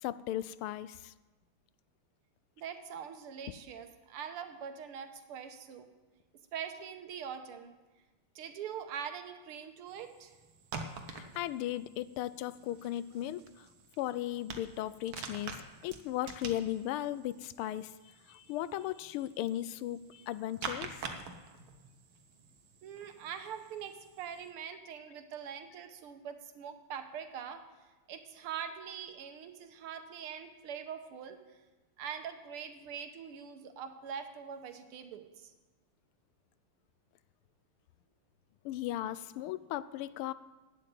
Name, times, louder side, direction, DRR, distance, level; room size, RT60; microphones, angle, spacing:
voice 1, 0.0-1.1 11.1-13.7 14.0-15.6 15.8-17.9 18.3-20.9 38.6-40.3, left 13 dB, 80° left, 16 dB, 1.4 m, -36 dB
voice 2, 2.6-5.9 6.5-7.7 8.4-10.3 22.8-27.6 28.1-31.6 32.0-35.5, right 8 dB, 85° right, 8 dB, 1.9 m, -43 dB
sound 1, 9.9-24.5, right 5 dB, 70° right, 1.9 m, -47 dB
12.0 x 9.2 x 7.7 m, 1.2 s
omnidirectional pair, 2.4 m